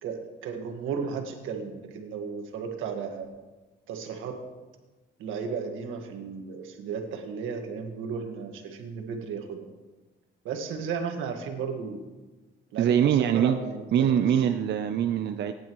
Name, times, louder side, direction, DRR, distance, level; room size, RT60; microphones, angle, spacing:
voice 1, 0.0-3.3 3.9-4.5 5.2-9.7 10.4-12.0 12.7-14.4, right 6 dB, 90° right, 4 dB, 1.7 m, -34 dB
voice 2, 12.8-13.6 13.9-15.5, right 9 dB, 60° right, 7 dB, 0.6 m, -23 dB
18.5 x 10.0 x 3.1 m, 1.2 s
cardioid pair, 90°, 20 cm